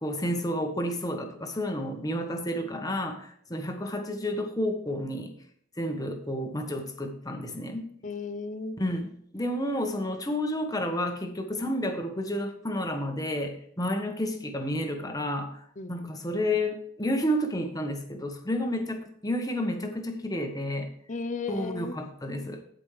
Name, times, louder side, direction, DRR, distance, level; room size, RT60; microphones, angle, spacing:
voice 1, 0.0-5.3 5.8-7.9 8.8-20.9 21.5-22.6, left 1 dB, 20° left, 5 dB, 1.2 m, -31 dB
voice 2, 8.0-8.8 15.8-16.3 21.1-21.9, left 4 dB, 40° left, 10 dB, 0.6 m, -35 dB
15.5 x 5.2 x 3.3 m, 0.67 s
head